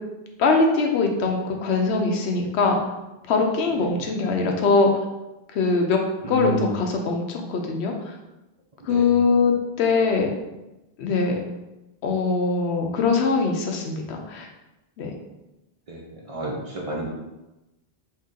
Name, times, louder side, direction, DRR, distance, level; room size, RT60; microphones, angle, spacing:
voice 1, 0.4-2.8 3.3-5.0 5.5-6.0 6.3-8.2 8.8-10.3 11.0-11.4 12.0-14.5 15.0-15.1, left 4 dB, 85° left, 2 dB, 0.9 m, -22 dB
voice 2, 6.2-6.7 8.9-9.2 15.9-17.1, right 1 dB, 40° right, -4 dB, 0.6 m, -31 dB
2.8 x 2.7 x 3.6 m, 1.0 s
omnidirectional pair, 1.1 m